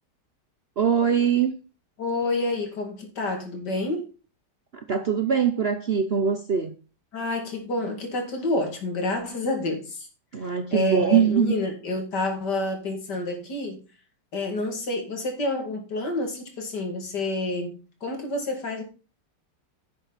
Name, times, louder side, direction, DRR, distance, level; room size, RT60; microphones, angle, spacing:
voice 1, 0.8-1.5 4.7-6.7 10.3-11.6, right 7 dB, 55° right, 0.7 m, -22 dB
voice 2, 2.0-4.1 7.1-10.1 10.7-13.8 14.3-18.8, left 2 dB, 75° left, 3.0 m, -28 dB
10.5 x 7.9 x 4.1 m
omnidirectional pair, 1.8 m